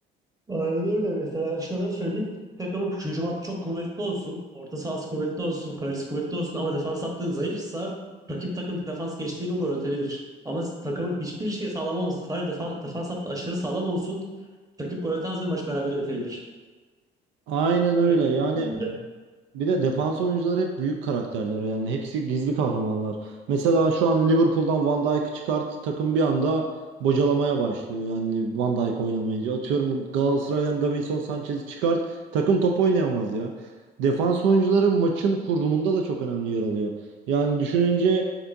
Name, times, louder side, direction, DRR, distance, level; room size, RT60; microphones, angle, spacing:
voice 1, 0.5-2.3 2.6-8.0 8.3-10.2 10.4-14.2 14.8-16.4 18.1-18.2 18.5-18.9, right 1 dB, 20° right, -1 dB, 1.1 m, -29 dB
voice 2, 17.5-18.7 19.5-26.6 27.0-33.5 34.0-36.9 37.3-38.3, right 4 dB, 80° right, 3 dB, 0.5 m, -24 dB
6.8 x 2.7 x 2.6 m, 1.4 s
supercardioid pair, 80°, 20 cm